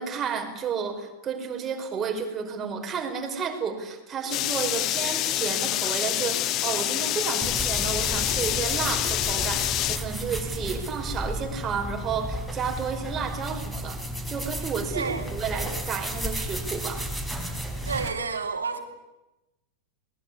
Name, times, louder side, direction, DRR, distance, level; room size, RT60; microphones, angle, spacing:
voice 1, 0.0-14.0 14.3-17.1, right 6 dB, 25° right, 4 dB, 5.0 m, -31 dB
sound 1, 4.3-10.0, left 14 dB, 35° left, 1.0 m, -27 dB
sound 2, 7.4-18.1, equal, ahead, 4.2 m, -33 dB
voice 2, 14.9-15.3 17.8-18.8, right 5 dB, 75° right, 6 dB, 3.3 m, -30 dB
22.5 x 20.0 x 9.9 m, 0.97 s
figure-of-eight pair, 90°, 0 cm